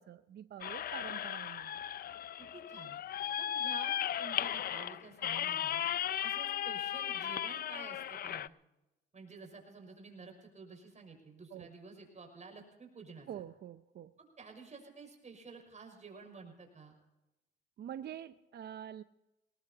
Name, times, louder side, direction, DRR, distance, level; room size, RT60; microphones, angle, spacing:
voice 1, 0.0-1.8 11.5-11.7 13.3-14.1 17.8-19.0, right 10 dB, 55° right, 11 dB, 0.6 m, -46 dB
sound 1, 0.6-8.5, left 10 dB, 50° left, 0.4 m, -36 dB
voice 2, 2.4-3.0 3.4-5.8 6.2-8.5 9.1-13.3 14.2-16.9, right 4 dB, 35° right, 2 dB, 5.8 m, -51 dB
21.5 x 19.0 x 2.9 m, 0.96 s
cardioid pair, 90°, 20 cm